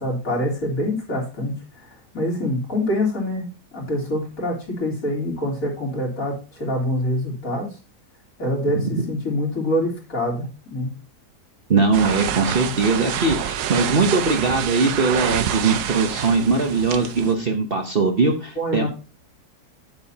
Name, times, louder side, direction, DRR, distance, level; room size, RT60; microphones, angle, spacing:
voice 1, 0.0-1.9 2.1-3.5 3.7-7.7 8.4-10.9 18.6-18.9, left 1 dB, 55° left, -2 dB, 3.7 m, -25 dB
voice 2, 8.7-9.0 11.7-18.9, right 4 dB, 40° right, 3 dB, 1.1 m, -21 dB
sound 1, 11.9-17.3, right 10 dB, 80° right, 1.3 m, -27 dB
9.2 x 8.1 x 2.8 m, 0.31 s
omnidirectional pair, 1.7 m